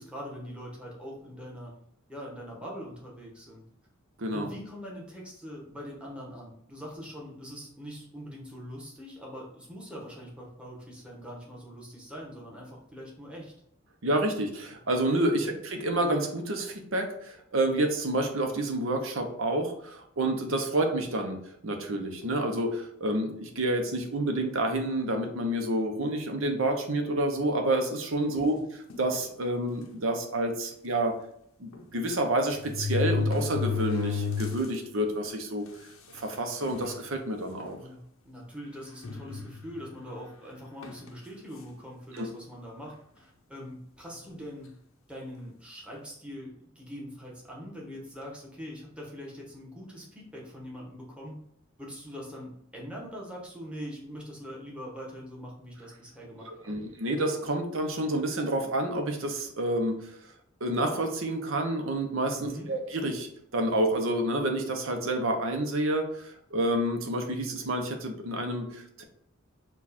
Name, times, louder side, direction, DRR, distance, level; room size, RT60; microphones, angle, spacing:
voice 1, 0.0-1.7 2.1-3.6 4.3-13.5 15.4-15.5 28.3-28.6 37.8-44.7 45.1-51.4 51.8-56.9 62.4-62.7, equal, 5° right, -3 dB, 1.1 m, -43 dB
voice 2, 14.0-28.5 29.0-31.1 31.6-35.6 36.1-37.8 42.1-42.3 56.5-60.1 60.6-69.0, right 1 dB, 70° right, 4 dB, 0.8 m, -29 dB
sound 1, 28.9-29.2 29.9-30.0 30.3-30.4 31.7-31.8 32.5-34.8 35.2-35.3 36.1-36.2 36.6-37.0 37.6-37.8 39.0-39.9 40.8-41.1, left 5 dB, 75° left, 0.7 m, -31 dB
4.6 x 2.4 x 4.2 m, 0.71 s
head